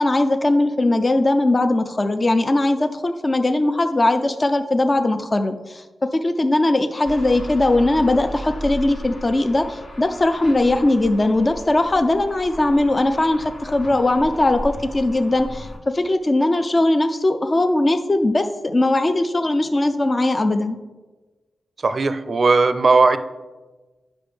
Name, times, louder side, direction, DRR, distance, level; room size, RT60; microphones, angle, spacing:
voice 1, 0.0-20.8, left 2 dB, 25° left, 8 dB, 0.4 m, -19 dB
sound 1, 7.1-15.8, left 1 dB, 45° left, 1.2 m, -36 dB
voice 2, 21.8-23.2, right 3 dB, 45° right, 11 dB, 0.4 m, -17 dB
9.8 x 6.1 x 3.3 m, 1.2 s
wide cardioid pair, 110°, 0 cm